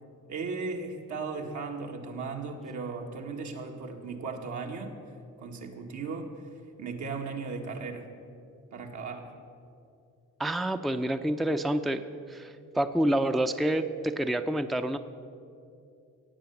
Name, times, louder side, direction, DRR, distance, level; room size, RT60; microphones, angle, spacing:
voice 1, 0.3-4.9 5.4-6.4 6.8-8.1 8.7-9.4, right 4 dB, 70° right, 2 dB, 1.8 m, -36 dB
voice 2, 10.4-12.0 12.3-15.0, right 1 dB, ahead, 9 dB, 0.5 m, -28 dB
17.0 x 7.9 x 7.1 m, 2.5 s
cardioid pair, 90°, 30 cm